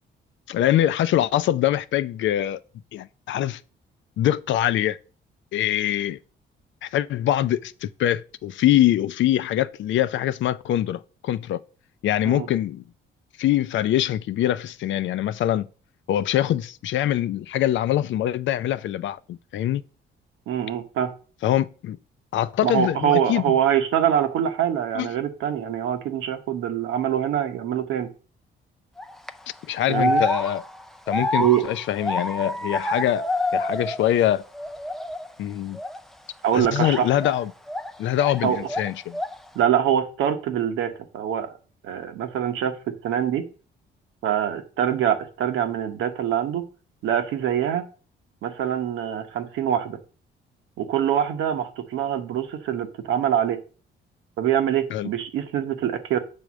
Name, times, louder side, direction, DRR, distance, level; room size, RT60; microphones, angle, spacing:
voice 1, 0.5-2.6 2.9-3.6 4.2-5.0 5.5-6.2 6.8-11.6 12.0-12.8 13.4-15.7 16.1-19.8 21.4-22.0 22.3-23.6 24.9-25.1 29.7-30.6 31.1-33.3 33.5-34.4 35.4-35.8 36.5-37.5 38.0-39.2 54.9-55.1, left 12 dB, 70° left, 0.5 m, -23 dB
voice 2, 20.5-21.1 22.6-28.1 29.9-30.2 31.4-31.6 36.4-37.1 38.4-38.6 39.5-41.6 41.8-43.4 44.2-46.6 47.0-47.8 48.4-50.0 50.8-53.6 54.4-56.2, right 10 dB, 90° right, 1.1 m, -24 dB
sound 1, 29.0-29.3 29.9-34.3 34.5-35.3 35.7-36.0 36.8-38.4 38.7-39.5, left 1 dB, ahead, 0.4 m, -28 dB
7.7 x 3.5 x 6.2 m
cardioid pair, 90°, 20 cm